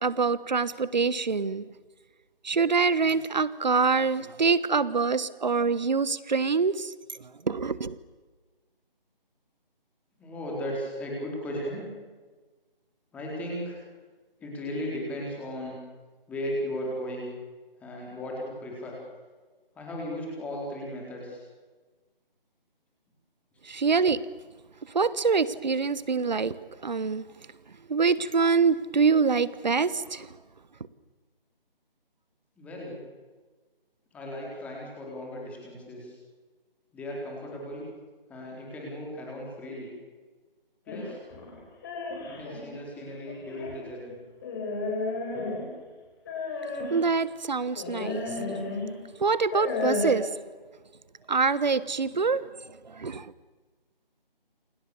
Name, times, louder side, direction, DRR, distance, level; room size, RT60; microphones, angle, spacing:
voice 1, 0.0-1.6 2.4-6.9 7.5-8.0 23.7-24.2 24.9-26.5 26.8-27.2 27.9-30.3 46.9-48.3 49.2-50.3 51.3-52.4 52.9-53.3, right 5 dB, 50° right, 1.3 m, -25 dB
voice 2, 10.2-11.9 13.1-13.8 14.4-15.8 16.3-17.3 17.8-19.0 19.8-21.4 32.6-33.0 34.1-36.1 36.9-37.9 38.3-39.9 40.9-41.2 42.2-44.2, equal, 5° left, 4.4 m, -36 dB
sound 1, 40.9-42.6 43.3-43.8 44.4-45.8 46.3-47.1 47.8-48.9 49.4-50.1, left 3 dB, 20° left, 6.1 m, -32 dB
28.5 x 25.5 x 7.1 m
figure-of-eight pair, 165°, 29 cm